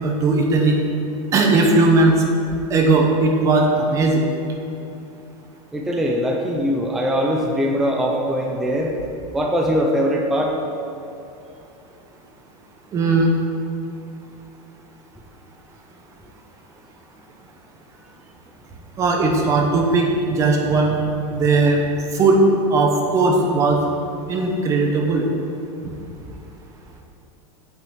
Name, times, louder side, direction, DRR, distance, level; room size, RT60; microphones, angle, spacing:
voice 1, 0.0-0.8 1.3-2.2 2.7-4.2 12.9-13.3 19.0-21.0 21.3-21.8 22.1-22.4 22.7-23.8 24.3-25.2, right 3 dB, 20° right, 2 dB, 0.9 m, -17 dB
voice 2, 5.7-8.9 9.3-10.5, equal, ahead, 0 dB, 0.4 m, -21 dB
8.8 x 5.8 x 7.7 m, 2.7 s
supercardioid pair, 175°, 17 cm